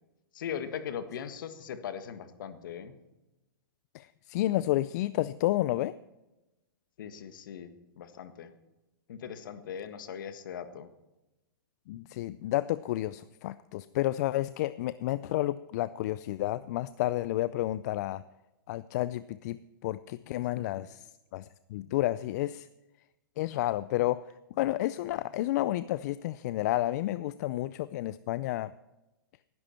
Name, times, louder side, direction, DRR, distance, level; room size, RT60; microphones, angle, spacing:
voice 1, 0.3-2.9 7.0-8.5 9.1-10.9 20.6-20.7, left 8 dB, 65° left, 10 dB, 1.6 m, -40 dB
voice 2, 3.9-5.9 11.9-18.2 18.7-21.0 21.3-22.7 23.4-24.2 24.6-28.7, left 15 dB, 50° left, 16 dB, 0.4 m, -31 dB
18.5 x 11.0 x 4.4 m, 1.0 s
hypercardioid pair, 125°, 12 cm